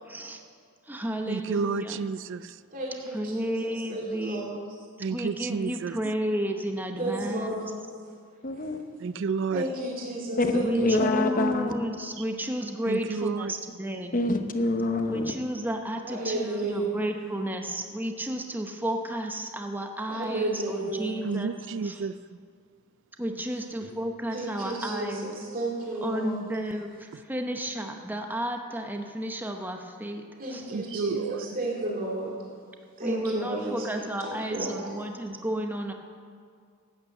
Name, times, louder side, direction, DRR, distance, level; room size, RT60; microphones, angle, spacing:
voice 1, 0.1-0.4 0.9-2.1 3.1-4.7 5.1-7.5 10.6-14.2 15.1-21.5 21.8-22.0 23.2-25.3 26.0-30.2 30.5-30.6 33.0-35.9, right 1 dB, 10° right, 4 dB, 0.8 m, -32 dB
voice 2, 1.3-2.5 5.0-6.0 9.0-9.6 12.9-13.5 21.2-22.1 30.7-31.5, right 5 dB, 55° right, 16 dB, 0.4 m, -30 dB
voice 3, 2.7-4.6 7.0-7.7 9.5-11.3 16.0-17.0 20.1-21.2 24.3-26.4 30.4-32.5 33.0-34.9, right 2 dB, 40° right, -3 dB, 2.5 m, -32 dB
voice 4, 8.4-8.8 10.4-11.7 14.1-15.3, left 2 dB, 35° left, 7 dB, 0.9 m, -26 dB
12.0 x 8.8 x 7.9 m, 2.2 s
head